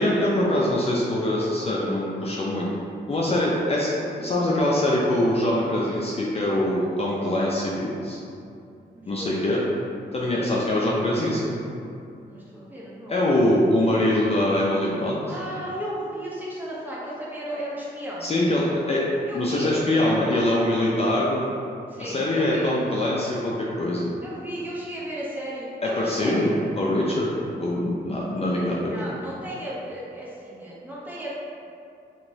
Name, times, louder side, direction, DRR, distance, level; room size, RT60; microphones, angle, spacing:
voice 1, 0.0-2.7 3.1-8.2 9.1-9.6 10.1-11.6 13.1-15.2 18.2-19.0 19.3-21.5 22.0-24.1 25.8-27.3 27.6-29.0, left 1 dB, 35° left, -5 dB, 0.5 m, -23 dB
voice 2, 8.9-9.8 10.4-10.7 12.3-13.2 15.3-18.3 19.3-19.7 20.0-20.2 21.9-22.7 24.2-26.6 28.9-31.3, right 1 dB, 10° right, -7 dB, 0.9 m, -35 dB
2.9 x 2.9 x 2.7 m, 2.5 s
cardioid pair, 60°, 19 cm